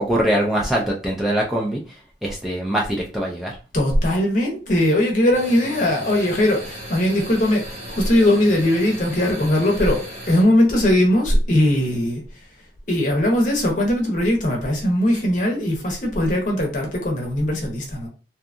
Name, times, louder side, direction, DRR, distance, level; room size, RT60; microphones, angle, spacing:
voice 1, 0.0-1.8 2.2-3.5, right 1 dB, ahead, 0.4 m, -22 dB
voice 2, 3.7-12.2 12.9-18.1, left 1 dB, 45° left, 0.7 m, -20 dB
sound 1, 5.3-10.4, equal, 35° right, 0.9 m, -36 dB
2.7 x 2.3 x 2.4 m
head